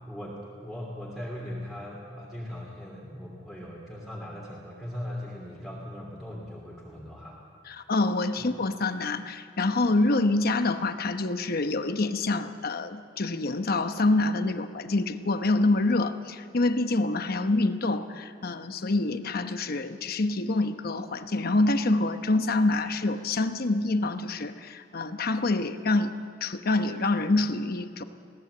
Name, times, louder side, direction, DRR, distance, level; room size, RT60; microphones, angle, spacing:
voice 1, 0.1-7.4 8.4-8.5, left 1 dB, ahead, -4 dB, 2.8 m, -39 dB
voice 2, 7.9-26.1 26.4-28.0, left 2 dB, 55° left, 9 dB, 1.0 m, -26 dB
21.5 x 16.5 x 7.9 m, 2.3 s
head